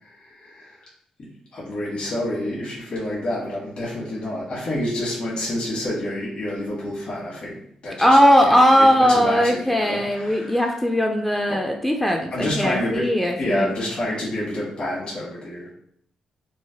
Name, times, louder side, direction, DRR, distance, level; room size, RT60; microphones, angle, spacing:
voice 1, 0.0-0.8 1.5-8.2 8.4-10.8 11.5-11.6 12.3-15.7, left 1 dB, 55° left, -6 dB, 1.1 m, -28 dB
voice 2, 8.0-13.7, equal, 10° left, 1 dB, 0.3 m, -18 dB
3.1 x 2.0 x 2.7 m, 0.70 s
cardioid pair, 75°, 2 cm